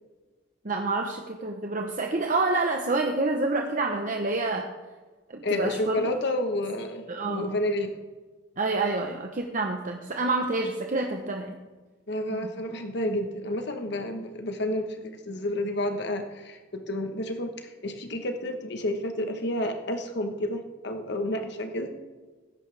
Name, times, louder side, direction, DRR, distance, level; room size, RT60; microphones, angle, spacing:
voice 1, 0.6-4.7 5.3-6.0 7.1-7.5 8.6-11.6 12.3-12.5, right 3 dB, 45° right, 3 dB, 0.9 m, -28 dB
voice 2, 5.4-7.9 12.1-21.9, left 1 dB, 60° left, 5 dB, 1.2 m, -30 dB
19.5 x 10.5 x 3.4 m, 1.3 s
head